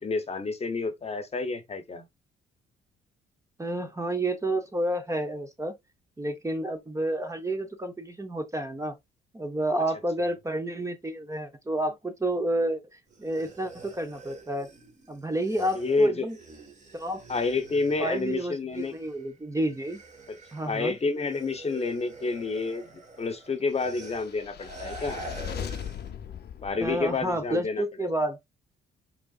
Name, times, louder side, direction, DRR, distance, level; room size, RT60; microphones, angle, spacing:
voice 1, 0.0-2.1 15.7-16.3 17.3-19.0 20.3-20.4 20.6-25.2 26.6-28.1, left 4 dB, 30° left, 0.9 m, -29 dB
voice 2, 3.6-5.8 6.2-8.9 9.3-14.7 15.1-16.4 16.9-17.2 18.0-20.0 20.5-21.0 26.8-28.4, right 1 dB, 15° right, 0.7 m, -30 dB
sound 1, 13.1-19.3 19.6-26.1, right 3 dB, 35° right, 1.6 m, -46 dB
sound 2, 24.0-27.5, left 9 dB, 55° left, 0.7 m, -39 dB
4.7 x 3.7 x 2.4 m
cardioid pair, 90°, 20 cm